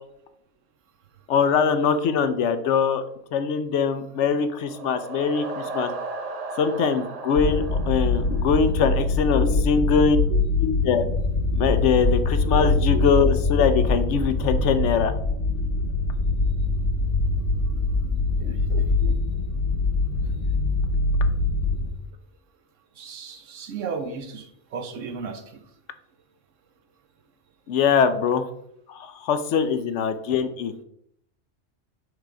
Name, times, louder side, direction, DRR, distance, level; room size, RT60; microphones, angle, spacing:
voice 1, 1.3-3.0 3.3-5.9 6.6-10.2 10.6-11.0 11.5-15.1 27.7-28.4 28.9-30.7, left 6 dB, 70° left, 10 dB, 0.9 m, -22 dB
sound 1, 4.2-9.1, right 3 dB, 40° right, 0.7 m, -36 dB
sound 2, 7.4-21.9, left 3 dB, 90° left, 1.4 m, -23 dB
voice 2, 12.6-13.0 18.4-19.1 20.2-20.4 23.0-25.4, right 5 dB, 75° right, 7 dB, 1.1 m, -34 dB
6.4 x 3.8 x 4.7 m, 0.72 s
omnidirectional pair, 1.3 m